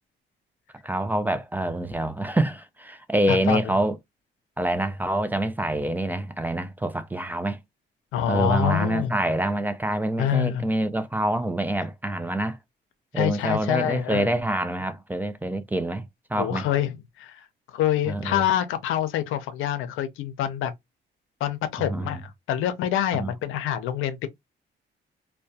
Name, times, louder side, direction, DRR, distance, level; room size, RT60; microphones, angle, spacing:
voice 1, 0.8-3.9 4.6-7.6 8.3-12.6 13.1-16.1 16.3-16.7 18.1-18.4 21.9-22.2 23.2-23.3, right 1 dB, 10° right, 0.3 m, -26 dB
voice 2, 3.3-3.7 8.1-9.1 10.2-10.6 13.1-14.3 16.3-16.9 17.2-17.4 17.7-20.7 21.4-24.3, left 11 dB, 90° left, 0.5 m, -26 dB
2.2 x 2.1 x 2.6 m
cardioid pair, 90°, 20 cm